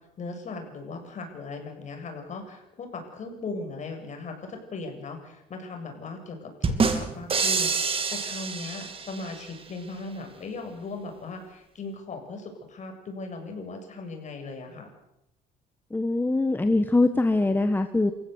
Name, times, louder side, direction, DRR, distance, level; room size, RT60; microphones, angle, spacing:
voice 1, 0.2-14.9, left 3 dB, 45° left, 4 dB, 7.5 m, -38 dB
sound 1, 6.6-9.5, right 5 dB, 35° right, 3.1 m, -27 dB
voice 2, 15.9-18.1, left 2 dB, 10° left, 8 dB, 1.4 m, -23 dB
28.5 x 16.0 x 8.2 m, 0.84 s
cardioid pair, 110°, 17 cm